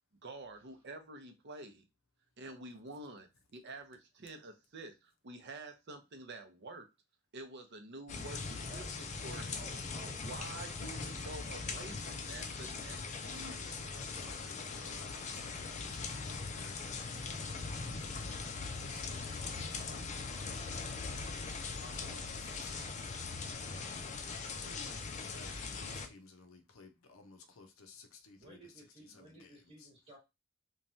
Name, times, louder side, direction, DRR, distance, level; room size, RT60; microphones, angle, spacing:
voice 1, 0.2-1.8 2.4-6.9 7.3-9.7 10.2-13.6, right 2 dB, 55° right, 0.7 m, -48 dB
sound 1, 8.1-26.1, left 4 dB, 35° left, 0.4 m, -41 dB
voice 2, 8.6-9.0 9.5-10.2 10.9-11.1 28.4-30.2, right 2 dB, 30° right, 1.1 m, -55 dB
voice 3, 13.2-20.7 21.7-23.2 23.6-28.6 29.0-29.5 29.8-29.9, left 3 dB, 85° left, 0.6 m, -56 dB
3.1 x 2.2 x 2.6 m
head